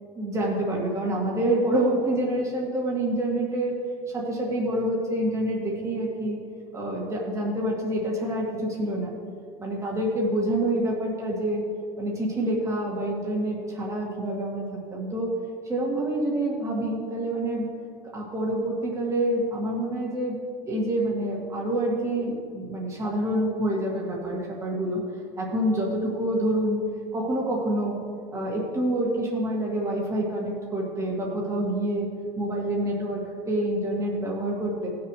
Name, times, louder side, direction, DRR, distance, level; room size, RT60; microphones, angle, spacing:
voice 1, 0.2-3.7 4.1-6.4 6.7-9.1 9.6-11.6 12.0-15.3 15.7-17.7 18.1-20.3 20.6-25.0 25.4-26.8 27.1-28.0 28.3-32.1 32.4-34.9, right 1 dB, 20° right, -3 dB, 2.4 m, -27 dB
17.5 x 7.0 x 3.3 m, 2.2 s
cardioid pair, 140°, 17 cm